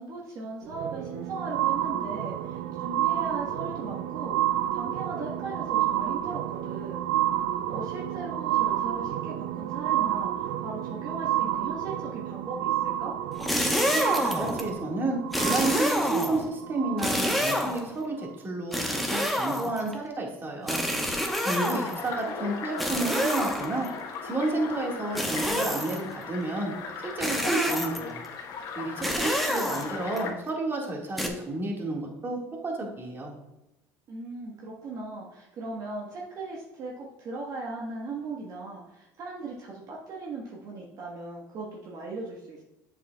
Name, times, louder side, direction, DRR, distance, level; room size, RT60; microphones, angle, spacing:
voice 1, 0.0-4.4 4.7-7.0 7.7-13.2 21.5-21.8 22.2-22.3 34.1-42.6, right 3 dB, 55° right, -2 dB, 1.4 m, -38 dB
sound 1, 0.6-17.5 18.2-18.3, right 12 dB, 80° right, 0.4 m, -30 dB
sound 2, 13.3-14.7 15.3-16.5 17.0-17.9 18.7-19.9 20.7-22.1 22.8-23.9 25.2-26.1 27.2-28.1 29.0-30.2 31.2-31.3, equal, ahead, 1.0 m, -28 dB
voice 2, 13.9-20.8 21.4-23.9 24.2-26.7 27.0-28.2 28.8-33.3, right 2 dB, 30° right, 0 dB, 1.8 m, -31 dB
sound 3, 21.2-30.3, left 5 dB, 65° left, 1.1 m, -38 dB
7.6 x 6.6 x 2.3 m, 0.93 s
supercardioid pair, 90°, 8 cm